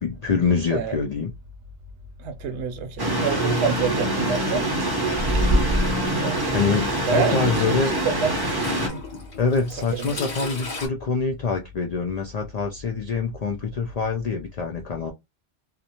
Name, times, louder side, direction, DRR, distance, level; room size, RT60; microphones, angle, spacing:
voice 1, 0.0-1.3 6.5-7.9 9.4-15.1, left 4 dB, 75° left, 0.3 m, -25 dB
voice 2, 2.2-4.7 6.1-6.5 7.0-8.4 8.9-9.0 9.8-10.2, right 6 dB, 70° right, 0.8 m, -27 dB
sound 1, 3.0-8.9, right 1 dB, 30° right, 0.4 m, -25 dB
Toilet flush / Trickle dribble, 5.1-6.0 7.1-7.2 8.5-10.9, equal, 40° left, 0.9 m, -27 dB
2.5 x 2.1 x 2.8 m
omnidirectional pair, 1.2 m